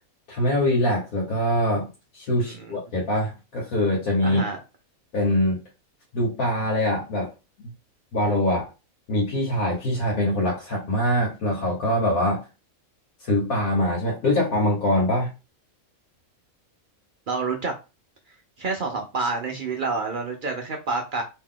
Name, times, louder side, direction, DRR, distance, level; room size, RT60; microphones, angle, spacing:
voice 1, 0.3-1.9 2.1-4.4 5.1-5.6 6.1-7.3 8.1-8.7 9.1-12.4 13.3-15.3, left 1 dB, 90° left, -4 dB, 1.7 m, -23 dB
voice 2, 2.4-2.7 4.2-4.6 17.3-17.7 18.6-21.2, right 3 dB, 55° right, 2 dB, 0.6 m, -28 dB
3.1 x 2.8 x 3.7 m, 0.29 s
omnidirectional pair, 1.5 m